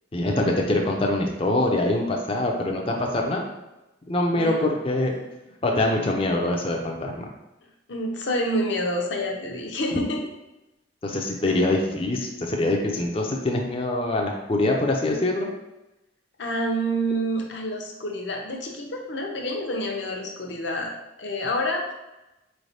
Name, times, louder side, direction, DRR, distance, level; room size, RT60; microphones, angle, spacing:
voice 1, 0.1-3.5 4.1-5.1 5.6-7.3 11.0-15.5, left 1 dB, 30° left, 1 dB, 0.4 m, -24 dB
voice 2, 4.3-4.7 7.9-10.2 11.4-11.5 16.4-20.9 21.2-21.9, equal, 70° left, 1 dB, 0.7 m, -28 dB
4.2 x 3.2 x 2.7 m, 0.98 s
head